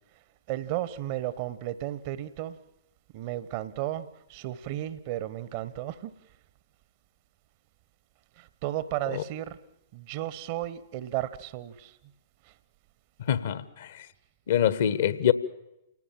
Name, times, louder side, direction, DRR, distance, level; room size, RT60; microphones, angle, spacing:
voice 1, 0.5-2.6 3.1-6.1 8.4-9.6 9.9-12.0 12.5-12.6, right 14 dB, 40° right, 1.0 m, -34 dB
voice 2, 13.3-13.9 14.5-15.3, left 10 dB, 55° left, 1.3 m, -24 dB
29.0 x 18.0 x 7.5 m
figure-of-eight pair, 105°, 0 cm